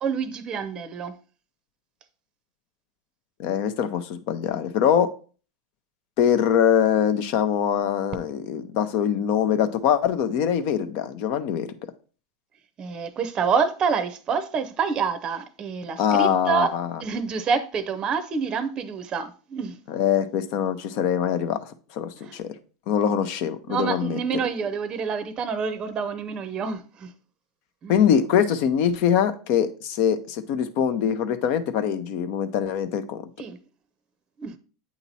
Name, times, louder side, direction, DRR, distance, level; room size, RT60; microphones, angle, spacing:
voice 1, 0.0-1.1 12.8-19.8 22.2-22.4 23.7-27.1 27.8-27.9 33.4-33.6 34.4-34.6, right 6 dB, 30° right, 0.6 m, -27 dB
voice 2, 3.4-5.1 6.2-11.7 16.0-16.9 19.9-22.6 22.9-24.2 27.9-33.2, left 8 dB, 60° left, 0.7 m, -23 dB
8.3 x 2.9 x 4.1 m
hypercardioid pair, 110°, 3 cm